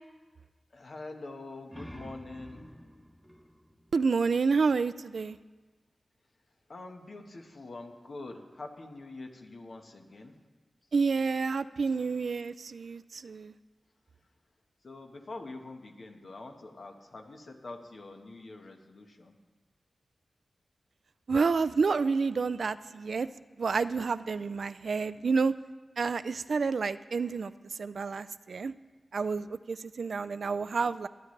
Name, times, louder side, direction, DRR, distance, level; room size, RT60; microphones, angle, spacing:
voice 1, 0.7-2.7 6.7-10.4 14.8-19.4, left 2 dB, 65° left, 3 dB, 1.4 m, -45 dB
sound 1, 1.4-4.9, equal, 5° right, 0.8 m, -50 dB
voice 2, 3.9-5.4 10.9-13.5 21.3-23.3 23.6-25.5 26.0-27.5 27.8-28.7 29.1-31.1, right 4 dB, 75° right, 13 dB, 0.3 m, -29 dB
23.5 x 8.9 x 3.3 m, 1.3 s
cardioid pair, 65°, 0 cm